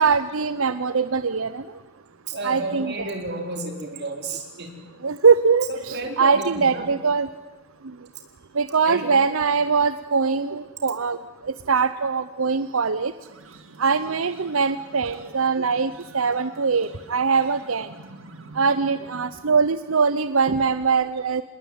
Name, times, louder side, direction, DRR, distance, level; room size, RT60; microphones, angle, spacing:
voice 1, 0.0-1.6 2.4-3.1 5.0-7.3 8.6-11.2 11.7-13.1 13.8-17.9 18.6-21.4, right 5 dB, 85° right, 13 dB, 0.8 m, -22 dB
voice 2, 2.3-4.9 5.7-6.9 8.9-9.1 14.0-14.1, right 2 dB, 55° right, 4 dB, 4.2 m, -32 dB
sound 1, 13.2-19.4, right 2 dB, 70° right, 2.7 m, -47 dB
26.5 x 20.0 x 9.4 m, 1.2 s
head